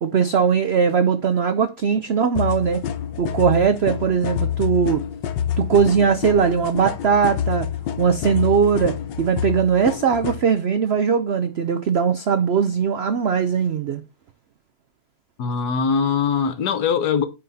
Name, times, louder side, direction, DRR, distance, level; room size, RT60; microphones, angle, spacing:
voice 1, 0.0-2.8 3.2-5.1 5.6-7.7 8.0-14.0, right 6 dB, 90° right, 0.5 m, -20 dB
sound 1, 2.4-10.4, left 9 dB, 85° left, 1.4 m, -27 dB
voice 2, 15.4-17.3, left 6 dB, 65° left, 1.4 m, -21 dB
9.5 x 4.0 x 4.0 m
omnidirectional pair, 1.9 m